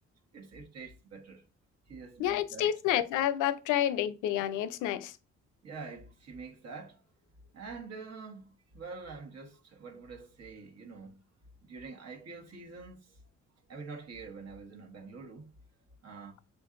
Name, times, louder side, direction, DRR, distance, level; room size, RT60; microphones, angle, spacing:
voice 1, 0.3-1.4 1.9-2.7 5.6-7.0 7.5-11.2 11.6-13.2 13.7-15.5 16.0-16.4, right 4 dB, 55° right, 1.2 m, -46 dB
voice 2, 2.2-5.1, left 11 dB, 90° left, 0.5 m, -29 dB
6.9 x 2.5 x 2.5 m
cardioid pair, 90°, 30 cm